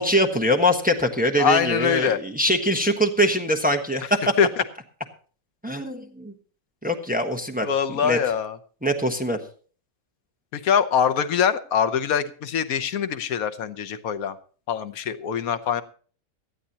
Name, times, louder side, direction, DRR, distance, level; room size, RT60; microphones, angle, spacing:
voice 1, 0.0-4.3 5.6-6.3 6.8-8.2 8.8-9.4, equal, 5° right, 4 dB, 1.1 m, -23 dB
voice 2, 1.4-2.2 4.4-4.5 7.6-8.6 10.5-14.4 14.7-15.8, left 7 dB, 90° left, 12 dB, 1.3 m, -23 dB
17.5 x 13.0 x 2.9 m, 0.41 s
omnidirectional pair, 1.4 m